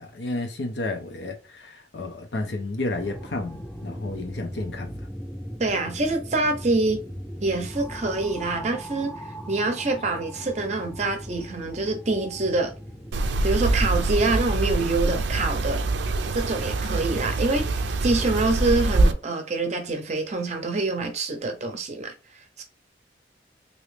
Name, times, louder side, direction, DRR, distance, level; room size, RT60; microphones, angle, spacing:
voice 1, 0.0-5.0, left 2 dB, 75° left, 0.8 m, -31 dB
sound 1, 2.9-14.1, equal, 5° left, 0.4 m, -39 dB
voice 2, 5.6-7.0 7.4-12.7 13.4-15.9 16.3-22.1 22.6-22.7, right 2 dB, 40° right, 0.6 m, -26 dB
sound 2, 13.1-19.1, right 2 dB, 75° right, 0.4 m, -24 dB
3.0 x 2.8 x 3.2 m
head